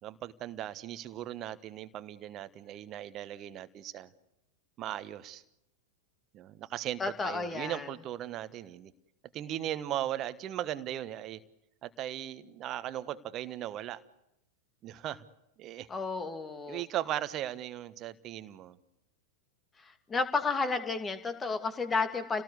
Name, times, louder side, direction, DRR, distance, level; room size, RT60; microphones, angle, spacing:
voice 1, 0.0-4.1 4.8-5.4 6.3-8.9 9.3-11.4 11.8-14.0 14.8-15.2 15.6-15.9 16.7-18.8, right 12 dB, 35° right, 13 dB, 1.4 m, -38 dB
voice 2, 7.0-7.9 15.9-16.8 19.8-22.4, left 4 dB, 15° left, 9 dB, 2.5 m, -32 dB
30.0 x 18.5 x 8.2 m, 0.86 s
figure-of-eight pair, 90°, 0 cm